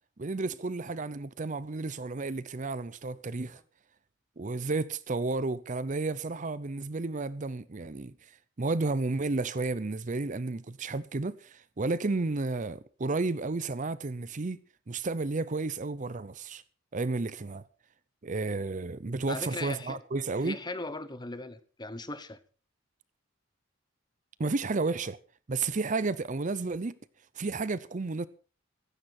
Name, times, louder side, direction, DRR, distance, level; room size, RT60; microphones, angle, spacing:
voice 1, 0.2-3.6 4.4-8.1 8.6-14.6 14.9-16.6 16.9-17.7 18.2-20.6 24.4-25.2 25.5-27.0 27.4-28.3, right 3 dB, 40° right, 0.6 m, -32 dB
voice 2, 19.3-20.0 20.4-22.4, left 2 dB, 20° left, 1.1 m, -38 dB
16.0 x 14.5 x 4.3 m
head